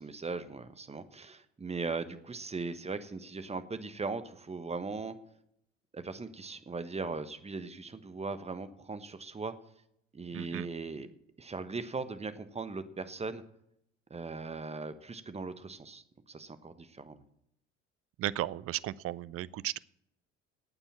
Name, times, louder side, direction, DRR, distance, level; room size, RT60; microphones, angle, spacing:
voice 1, 0.0-5.1 5.9-9.5 10.1-11.1 11.4-13.4 14.1-17.2, right 4 dB, 15° right, 11 dB, 1.2 m, -39 dB
voice 2, 10.3-10.7 18.2-19.8, right 14 dB, 40° right, 20 dB, 0.6 m, -35 dB
11.5 x 8.9 x 8.6 m, 0.75 s
figure-of-eight pair, 60°, 36 cm